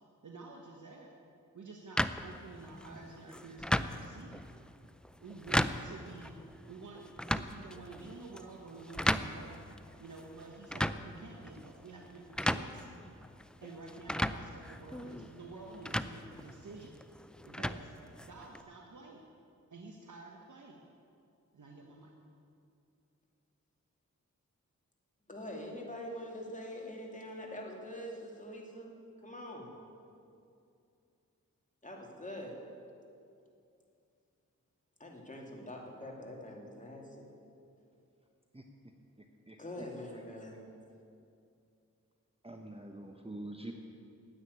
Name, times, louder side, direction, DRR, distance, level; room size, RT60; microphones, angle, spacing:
voice 1, 0.2-1.2 1.5-4.4 5.2-9.5 10.0-12.9 13.6-16.9 17.4-17.9 18.2-19.2 19.7-20.8 21.5-22.1, right 3 dB, 65° right, 0 dB, 1.3 m, -50 dB
sound 1, 2.0-18.6, equal, 5° left, 0.5 m, -37 dB
voice 2, 25.3-28.9 29.2-29.7 31.8-32.6 35.0-37.3 39.6-40.7, left 1 dB, 25° left, -1 dB, 2.7 m, -44 dB
voice 3, 39.2-39.9 40.5-40.6 42.4-43.7, right 1 dB, 20° right, 3 dB, 1.0 m, -46 dB
9.8 x 9.0 x 9.8 m, 2.5 s
cardioid pair, 50°, 32 cm